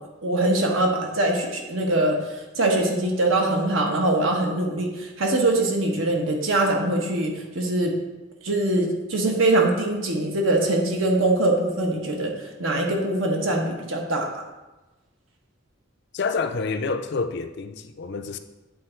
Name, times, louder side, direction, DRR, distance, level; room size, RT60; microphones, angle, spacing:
voice 1, 0.2-7.9 8.4-14.3, right 2 dB, 75° right, 1.3 m, -23 dB
voice 2, 16.1-18.4, left 4 dB, 55° left, 0.5 m, -28 dB
8.6 x 3.9 x 4.5 m
head